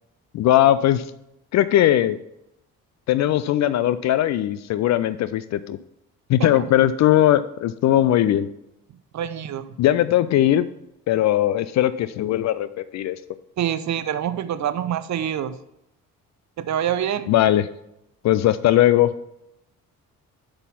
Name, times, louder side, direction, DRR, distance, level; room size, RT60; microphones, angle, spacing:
voice 1, 0.3-1.0 1.5-2.2 3.1-5.8 6.3-8.5 9.8-10.7 11.1-13.2 17.3-17.7 18.2-19.1, left 12 dB, 40° left, 14 dB, 0.4 m, -19 dB
voice 2, 9.1-9.7 13.6-15.5 16.6-17.3, right 10 dB, 40° right, 13 dB, 0.6 m, -26 dB
8.1 x 5.6 x 5.5 m, 0.82 s
figure-of-eight pair, 40°, 46 cm